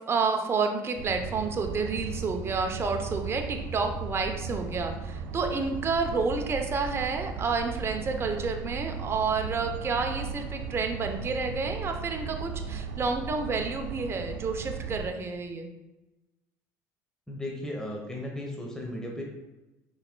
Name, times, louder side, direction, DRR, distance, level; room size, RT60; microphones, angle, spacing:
voice 1, 0.1-15.7, right 4 dB, 30° right, 4 dB, 0.7 m, -30 dB
sound 1, 1.0-15.1, right 5 dB, 75° right, 0.4 m, -37 dB
voice 2, 17.3-19.2, left 1 dB, 5° left, -1 dB, 0.9 m, -35 dB
5.7 x 4.3 x 2.2 m, 1.0 s
supercardioid pair, 100°, 8 cm